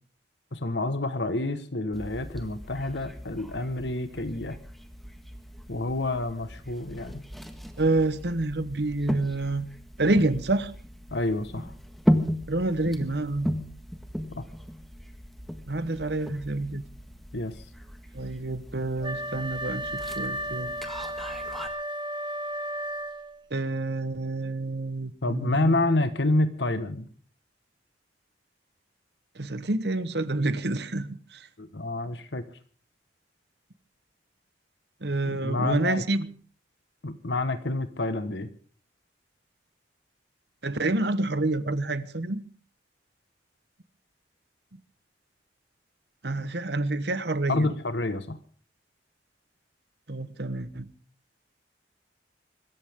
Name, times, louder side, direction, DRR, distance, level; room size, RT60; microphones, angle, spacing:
voice 1, 0.5-4.6 5.7-7.2 11.1-11.7 14.3-14.4 17.3-17.6 25.2-27.1 31.6-32.4 35.3-36.0 37.0-38.5 47.5-48.4, left 2 dB, 80° left, 1.5 m, -28 dB
sound 1, 1.9-21.7, equal, ahead, 1.6 m, -36 dB
voice 2, 7.8-9.7 10.0-10.7 12.5-13.5 15.7-16.8 18.1-20.7 23.5-25.8 29.3-31.5 35.0-36.3 40.6-42.4 46.2-47.7 50.1-50.9, right 2 dB, 65° right, 1.2 m, -28 dB
Wind instrument woodwind instrument, 19.0-23.5, right 1 dB, 25° right, 1.3 m, -34 dB
25.0 x 14.0 x 3.7 m
head